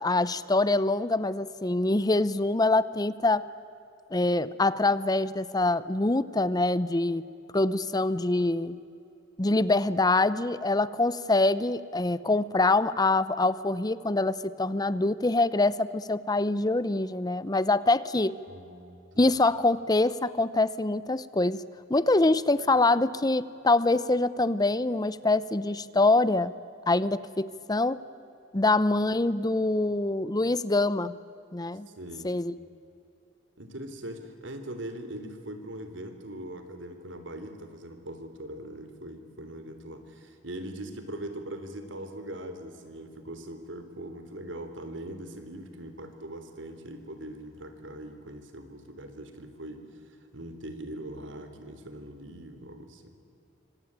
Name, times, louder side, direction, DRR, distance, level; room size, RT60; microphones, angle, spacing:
voice 1, 0.0-3.5 4.1-7.2 7.5-8.8 9.4-18.3 19.2-21.6 21.9-26.5 26.9-28.0 28.5-31.2 31.5-31.9 32.2-32.5, left 2 dB, 20° left, 16 dB, 0.7 m, -25 dB
voice 2, 18.5-19.3 32.0-32.3 33.6-53.2, right 1 dB, 85° right, 8 dB, 3.5 m, -41 dB
27.0 x 25.0 x 8.9 m, 2.7 s
head